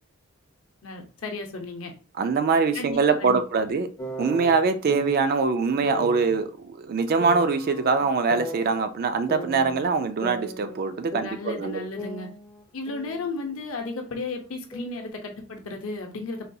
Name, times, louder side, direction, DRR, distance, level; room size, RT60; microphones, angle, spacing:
voice 1, 0.8-1.9 2.7-3.4 11.2-12.3 12.7-16.5, left 3 dB, 65° left, 0.7 m, -34 dB
voice 2, 2.2-3.9 4.2-11.8, right 4 dB, 45° right, 0.3 m, -23 dB
sound 1, 4.0-5.4 5.8-6.3 7.2-8.8 9.3-10.9 11.1-13.3 13.5-15.1, equal, 15° left, 0.5 m, -37 dB
4.0 x 2.3 x 2.6 m
head